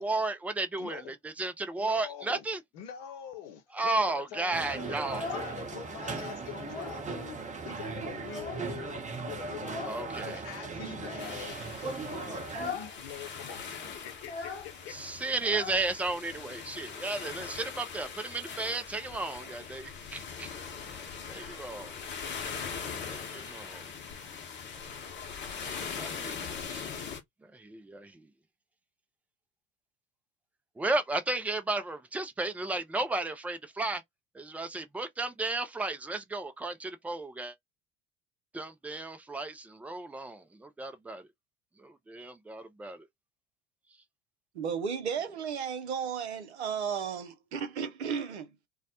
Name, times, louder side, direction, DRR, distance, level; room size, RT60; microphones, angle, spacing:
voice 1, 0.0-2.6 3.7-5.2 9.9-10.4 14.9-20.5 21.0-22.0 23.0-23.9 26.0-26.4 26.7-26.9 27.5-28.3 30.8-34.0 34.3-37.5 38.5-41.2 41.8-43.1, right 2 dB, 5° right, 0.3 m, -34 dB
voice 2, 0.8-1.1 1.8-2.4 2.7-15.0, left 9 dB, 60° left, 0.9 m, -44 dB
sound 1, 4.5-12.7, right 4 dB, 20° right, 0.8 m, -38 dB
Child speech kid speaking, 4.9-6.0 6.3-7.1 7.4-7.5 7.8-8.9 9.6-10.0 10.9-11.4 11.8-12.0 12.4-13.0 13.2-13.3 13.5-16.3, left 4 dB, 85° left, 0.6 m, -41 dB
sound 2, 11.2-27.2, left 6 dB, 35° left, 0.9 m, -41 dB
voice 3, 44.5-48.5, right 7 dB, 80° right, 0.6 m, -34 dB
2.2 x 2.0 x 2.8 m
figure-of-eight pair, 65°, 33 cm